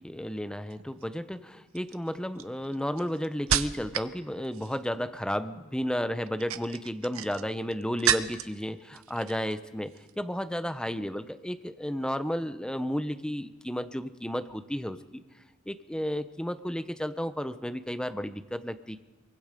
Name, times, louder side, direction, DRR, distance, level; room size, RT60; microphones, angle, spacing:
voice 1, 0.0-15.2 15.7-19.0, equal, 5° left, 10 dB, 0.7 m, -33 dB
sound 1, 0.7-1.0 1.8-4.2 4.4-5.0 6.2-8.6 8.9-9.6 9.9-10.1, right 9 dB, 70° right, 0.8 m, -32 dB
23.5 x 22.5 x 5.2 m, 1.2 s
head